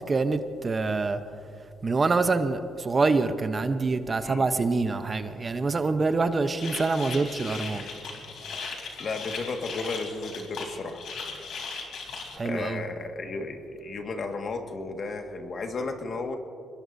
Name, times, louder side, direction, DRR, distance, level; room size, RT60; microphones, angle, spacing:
voice 1, 0.1-1.2 1.8-7.8 12.4-12.8, right 3 dB, 30° right, 9 dB, 0.9 m, -25 dB
sound 1, 6.6-12.4, left 4 dB, 70° left, 3.4 m, -37 dB
voice 2, 9.0-11.0 12.4-16.4, left 3 dB, 50° left, 4 dB, 1.8 m, -34 dB
24.5 x 21.5 x 2.7 m, 2.5 s
cardioid pair, 90°, 0 cm